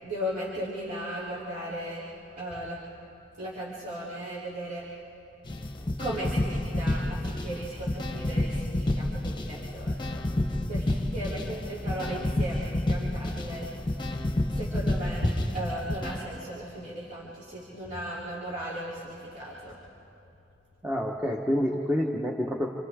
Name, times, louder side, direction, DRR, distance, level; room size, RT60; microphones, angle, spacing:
voice 1, 0.0-2.0 2.4-2.8 3.4-4.8 6.0-13.7 14.5-19.8, equal, 45° right, -9 dB, 3.7 m, -36 dB
sound 1, 5.5-16.2, left 1 dB, 25° left, 1.1 m, -30 dB
voice 2, 20.8-22.7, equal, 10° right, -1 dB, 1.4 m, -28 dB
28.5 x 28.0 x 3.8 m, 3.0 s
head